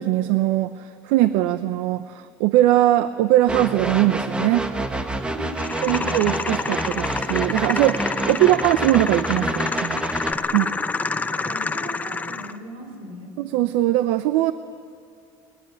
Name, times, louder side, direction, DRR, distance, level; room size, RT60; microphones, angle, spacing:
voice 1, 0.0-4.7 5.8-10.0 10.5-10.7 13.4-14.5, right 15 dB, 85° right, 12 dB, 0.7 m, -20 dB
sound 1, 3.5-10.3, right 1 dB, 10° right, 1.4 m, -28 dB
voice 2, 5.3-6.2 10.5-10.6 11.1-13.3, equal, 65° right, 5 dB, 5.9 m, -38 dB
sound 2, 5.6-12.6, left 4 dB, 15° left, 0.7 m, -28 dB
22.5 x 20.5 x 9.1 m, 2.3 s
cardioid pair, 130°, 10 cm